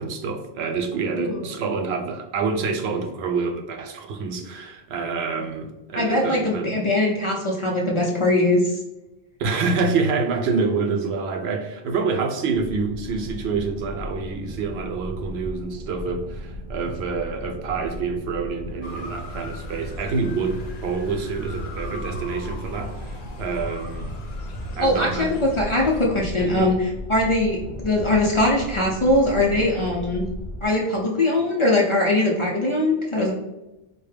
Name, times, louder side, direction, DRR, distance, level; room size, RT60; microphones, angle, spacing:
voice 1, 0.0-6.8 9.4-24.1 24.8-25.3 26.4-26.7, right 4 dB, 85° right, 4 dB, 0.9 m, -27 dB
voice 2, 6.0-8.8 24.8-30.2 30.6-33.3, left 1 dB, 40° left, -2 dB, 0.5 m, -21 dB
sound 1, 12.5-30.6, equal, 50° right, 1.0 m, -36 dB
Motor vehicle (road) / Siren, 18.8-26.1, left 2 dB, 60° left, 0.8 m, -40 dB
4.5 x 2.1 x 3.2 m, 0.99 s
omnidirectional pair, 1.0 m